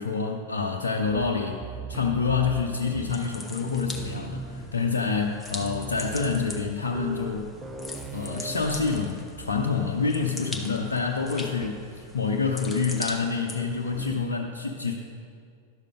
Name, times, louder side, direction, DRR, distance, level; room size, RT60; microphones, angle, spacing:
voice 1, 0.0-1.6 1.9-7.6 8.1-14.9, left 5 dB, 70° left, 0 dB, 0.6 m, -27 dB
sound 1, 1.6-3.4 3.6-4.9 5.3-5.4 5.6-9.7 10.0-10.3 11.6-11.9 12.6-13.0 13.9-14.4, right 4 dB, 20° right, 0.6 m, -39 dB
sound 2, 2.9-14.1, left 2 dB, 10° left, 0.9 m, -41 dB
11.0 x 6.7 x 5.0 m, 2.3 s
figure-of-eight pair, 90°, 0 cm